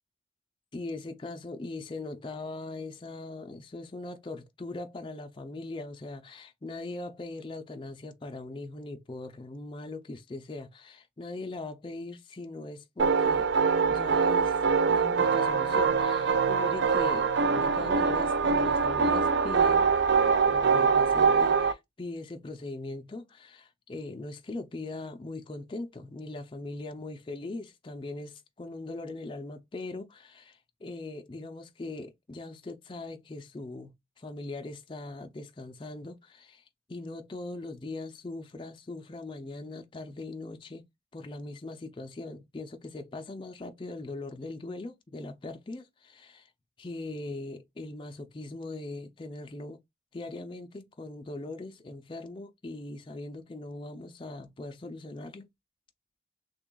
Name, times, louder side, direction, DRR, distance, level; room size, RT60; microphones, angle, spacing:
voice 1, 0.7-13.5 13.9-14.6 14.9-19.9 20.5-36.6 36.9-40.8 41.1-46.5 46.8-49.8 50.1-55.5, left 2 dB, 30° left, 0.4 m, -40 dB
sound 1, 13.0-21.7, right 5 dB, 85° right, 0.4 m, -24 dB
3.3 x 2.3 x 3.7 m
head